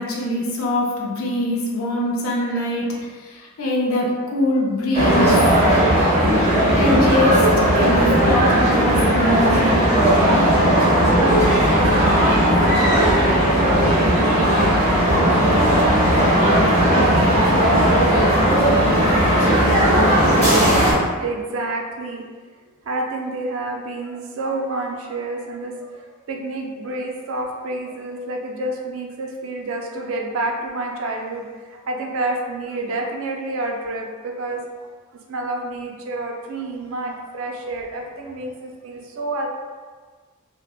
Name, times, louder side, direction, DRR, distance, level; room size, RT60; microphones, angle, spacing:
voice 1, 0.0-3.1 3.6-5.4 6.7-9.8, left 1 dB, 75° left, -2 dB, 0.5 m, -23 dB
sound 1, 4.9-20.9, equal, 30° right, 1.0 m, -16 dB
voice 2, 21.2-22.3 22.9-34.9 35.3-39.5, right 2 dB, 65° right, 0 dB, 0.4 m, -29 dB
2.7 x 2.1 x 2.3 m, 1.4 s
head